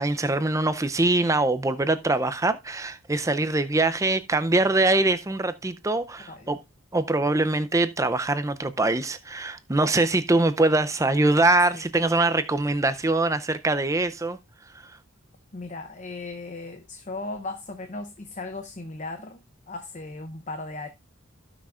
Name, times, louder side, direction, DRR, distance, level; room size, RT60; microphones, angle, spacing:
voice 1, 0.0-6.6 6.9-14.4, right 2 dB, 15° right, 0.5 m, -23 dB
voice 2, 15.5-20.9, left 2 dB, 35° left, 0.7 m, -37 dB
16.5 x 6.0 x 2.4 m
head